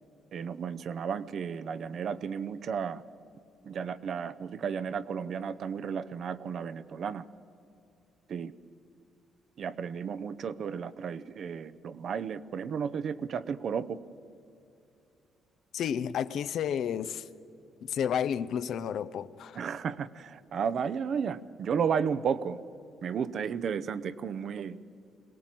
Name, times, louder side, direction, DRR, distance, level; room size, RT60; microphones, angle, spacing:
voice 1, 0.3-3.0 3.6-7.3 8.3-8.5 9.6-14.0 19.6-22.6 23.0-24.8, right 7 dB, 60° right, 0.7 m, -33 dB
voice 2, 15.7-17.3 17.8-19.6, left 8 dB, 70° left, 0.7 m, -31 dB
22.0 x 18.0 x 7.6 m
cardioid pair, 90°, 0 cm